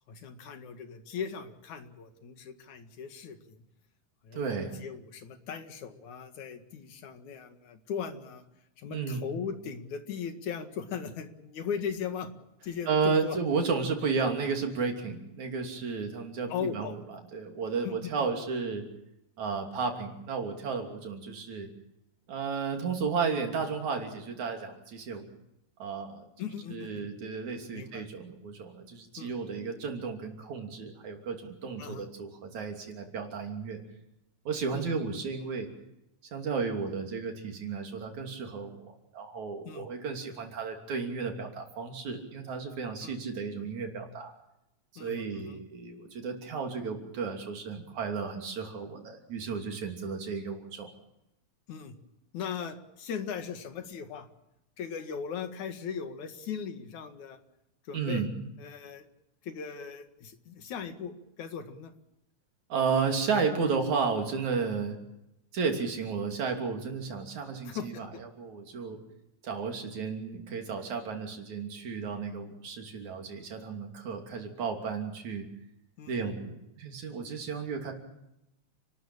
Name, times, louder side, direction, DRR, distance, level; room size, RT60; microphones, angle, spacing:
voice 1, 0.1-3.6 4.2-8.4 8.8-12.3 12.6-13.4 16.5-17.0 17.8-18.3 26.4-27.1 27.7-28.1 29.2-29.3 31.8-32.1 34.7-34.9 39.7-39.9 43.0-43.2 45.0-45.6 51.7-52.0 52.3-54.3 54.8-57.4 57.9-58.2 58.6-59.0 59.4-61.9 67.6-68.2 76.0-76.2, left 7 dB, 85° left, 8 dB, 3.3 m, -38 dB
voice 2, 4.3-4.8 8.9-9.3 12.9-18.8 19.4-21.7 22.3-25.3 25.8-33.8 34.5-35.7 36.3-44.3 44.9-50.9 57.9-58.3 62.7-65.0 65.5-68.1 68.4-69.0 69.4-75.5 76.1-77.9, right 5 dB, 75° right, 3 dB, 4.4 m, -33 dB
30.0 x 13.0 x 8.8 m, 0.86 s
omnidirectional pair, 3.3 m